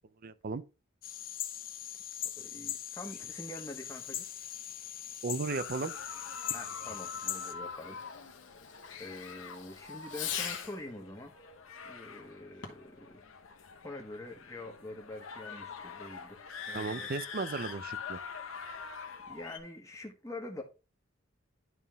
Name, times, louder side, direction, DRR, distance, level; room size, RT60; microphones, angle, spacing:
voice 1, 0.2-0.6 5.2-5.9 16.7-18.2, right 4 dB, 45° right, 0.5 m, -35 dB
sound 1, 1.0-7.5, left 11 dB, 45° left, 0.7 m, -41 dB
voice 2, 2.4-4.3 6.5-8.0 9.0-11.3 11.8-13.2 13.8-17.1 19.3-20.6, left 2 dB, 15° left, 1.3 m, -45 dB
Fireworks, 3.8-10.9 12.5-13.0, left 8 dB, 65° left, 1.4 m, -45 dB
sound 2, 5.5-19.6, left 6 dB, 85° left, 1.0 m, -45 dB
11.0 x 3.6 x 3.5 m
head